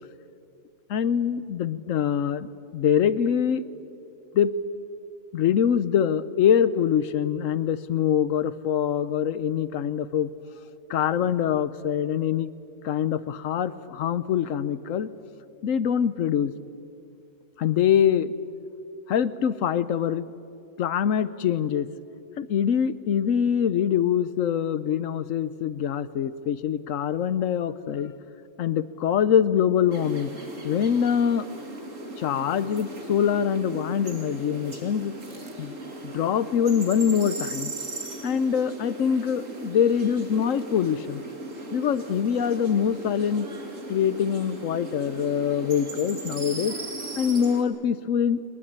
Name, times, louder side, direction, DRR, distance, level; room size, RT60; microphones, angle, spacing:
voice 1, 0.9-3.6 4.3-4.5 5.3-10.3 10.9-12.5 12.8-15.1 15.6-16.5 17.6-18.3 19.1-20.3 20.8-21.9 22.4-28.1 28.6-30.3 30.6-31.4 32.2-35.1 35.6-35.7 36.0-37.7 38.2-41.2 41.7-43.5 43.9-46.8 47.2-48.4, left 8 dB, 65° left, 15 dB, 1.1 m, -24 dB
sound 1, 29.9-47.6, right 2 dB, 60° right, 2.7 m, -38 dB
22.0 x 21.0 x 8.8 m, 2.6 s
omnidirectional pair, 1.5 m